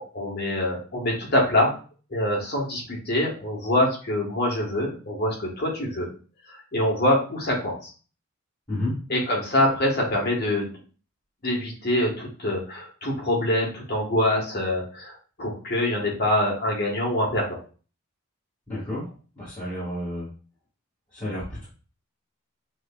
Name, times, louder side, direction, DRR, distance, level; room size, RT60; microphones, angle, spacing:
voice 1, 0.1-1.7 2.1-6.1 6.5-7.9 9.1-10.7 11.4-17.6, left 1 dB, 45° left, -2 dB, 1.4 m, -25 dB
voice 2, 18.7-19.1 19.4-20.3 21.1-21.7, left 1 dB, 20° left, -11 dB, 2.0 m, -30 dB
6.2 x 2.8 x 2.3 m, 0.37 s
head